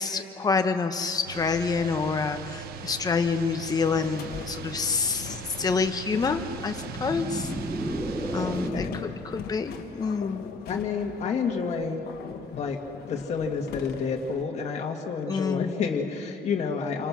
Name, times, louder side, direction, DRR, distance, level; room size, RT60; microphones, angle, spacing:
voice 1, 0.0-7.5 8.3-10.4 15.3-15.8, left 5 dB, 25° left, 6 dB, 1.1 m, -27 dB
sound 1, 1.3-8.7, right 7 dB, 80° right, 1.0 m, -40 dB
sound 2, 3.8-14.4, left 8 dB, 80° left, 1.6 m, -42 dB
sound 3, 6.7-9.2, right 1 dB, 10° right, 0.8 m, -32 dB
voice 2, 8.5-8.9 10.7-12.0 12.6-17.1, left 5 dB, 45° left, 1 dB, 2.2 m, -29 dB
28.5 x 24.5 x 6.2 m, 2.8 s
cardioid pair, 170°, 16 cm